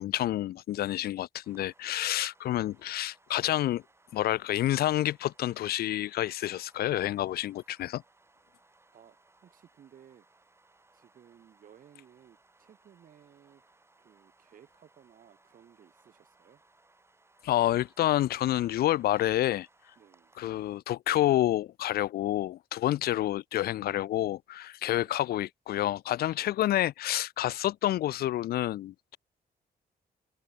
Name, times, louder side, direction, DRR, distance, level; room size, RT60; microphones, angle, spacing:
voice 1, 0.0-3.8 4.1-8.0 17.4-19.7 20.4-29.2, left 13 dB, 75° left, 0.5 m, -28 dB
sound 1, 1.4-20.8, right 2 dB, 15° right, 5.4 m, -65 dB
voice 2, 8.9-10.3 10.9-13.6 14.0-16.6 20.0-20.3 24.8-25.3 26.3-26.6, right 9 dB, 60° right, 5.5 m, -58 dB
cardioid pair, 130°, 16 cm